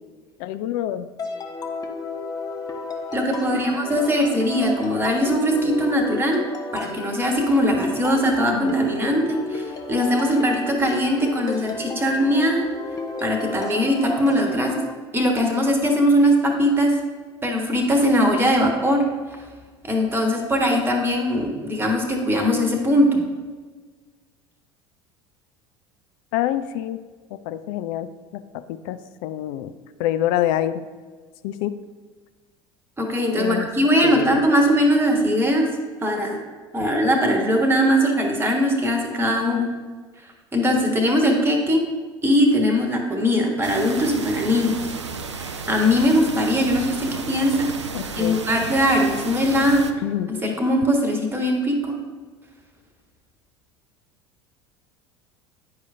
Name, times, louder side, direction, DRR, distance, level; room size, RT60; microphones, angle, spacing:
voice 1, 0.4-1.1 3.5-3.6 8.5-8.8 26.3-27.0 27.3-29.7 30.0-30.8 31.4-31.8 33.3-33.7 34.0-34.4 47.9-48.4 50.0-50.3, left 12 dB, 55° left, 11 dB, 0.4 m, -26 dB
sound 1, 1.2-14.9, left 3 dB, 25° left, 0.8 m, -33 dB
voice 2, 3.1-6.4 6.7-12.7 13.2-14.7 15.1-16.9 17.4-19.0 19.8-23.2 33.0-35.7 36.0-36.4 36.7-39.7 40.5-41.8 42.2-44.8 45.4-47.7 48.2-49.8 50.3-52.0, equal, 15° right, 2 dB, 1.3 m, -20 dB
sound 2, 43.6-49.9, right 5 dB, 85° right, 0.4 m, -33 dB
9.6 x 4.8 x 2.7 m, 1.4 s
figure-of-eight pair, 70°, 15 cm